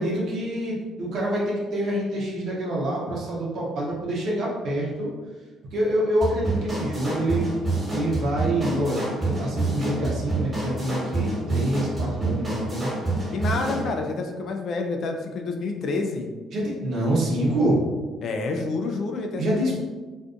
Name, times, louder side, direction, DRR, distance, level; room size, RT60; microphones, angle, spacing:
voice 1, 0.0-5.1 5.7-7.5 7.9-12.9 13.2-13.3 16.5-17.9 19.4-19.7, right 1 dB, 65° right, -4 dB, 0.8 m, -26 dB
sound 1, 6.2-13.9, right 2 dB, 20° right, 1.3 m, -28 dB
voice 2, 13.3-16.3 18.2-19.7, left 3 dB, 60° left, 4 dB, 0.3 m, -28 dB
2.5 x 2.4 x 2.5 m, 1.3 s
hypercardioid pair, 60°, 0 cm